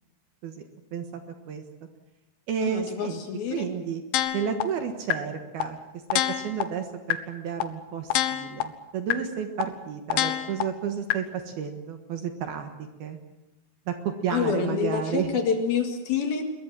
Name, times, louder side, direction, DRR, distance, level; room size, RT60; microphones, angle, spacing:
voice 1, 0.4-1.2 1.5-1.6 2.5-3.2 3.5-4.0 4.3-5.8 6.1-12.7 13.0-13.2 13.9-15.3, right 7 dB, 65° right, 6 dB, 3.0 m, -31 dB
voice 2, 2.6-3.7 14.3-16.4, left 6 dB, 60° left, 5 dB, 3.3 m, -27 dB
sound 1, 4.1-4.6 5.1-5.2 5.6-5.7 6.1-6.6 7.1-7.2 7.6-7.7 8.1-8.6 9.1-9.2 9.6-9.7 10.1-10.6 11.1-11.2, left 14 dB, 80° left, 3.5 m, -24 dB
22.5 x 22.0 x 7.5 m, 1.0 s
omnidirectional pair, 5.5 m